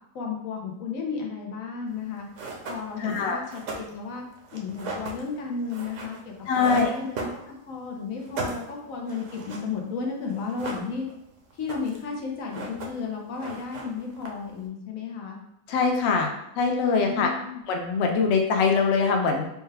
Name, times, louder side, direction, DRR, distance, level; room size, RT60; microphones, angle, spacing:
voice 1, 0.1-2.3 2.7-4.2 4.5-11.1 11.5-15.4 17.0-17.6, left 5 dB, 80° left, 1 dB, 1.2 m, -33 dB
sound 1, 2.0-2.1 2.3-7.8 8.1-10.0 10.3-11.2 11.5-12.1 12.4-13.1 13.4-14.6, right 3 dB, 65° right, 1.0 m, -37 dB
voice 2, 3.0-3.4 6.5-6.9 15.7-16.3 16.6-17.3 17.7-19.5, left 5 dB, 65° left, 2 dB, 0.8 m, -23 dB
4.7 x 2.2 x 3.3 m, 0.84 s
omnidirectional pair, 1.4 m